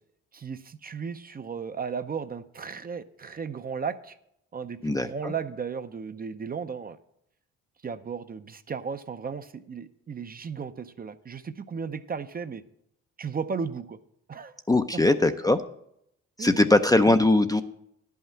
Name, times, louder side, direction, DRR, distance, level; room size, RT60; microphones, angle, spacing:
voice 1, 0.3-4.2 4.5-7.0 7.8-12.6 13.2-14.0 14.3-14.6 15.1-15.2 16.4-16.7, right 6 dB, 30° right, 10 dB, 0.6 m, -35 dB
voice 2, 4.8-5.3 14.7-15.6 16.4-17.6, left 2 dB, 10° left, 8 dB, 0.5 m, -21 dB
10.5 x 5.7 x 7.4 m, 0.75 s
cardioid pair, 90°, 30 cm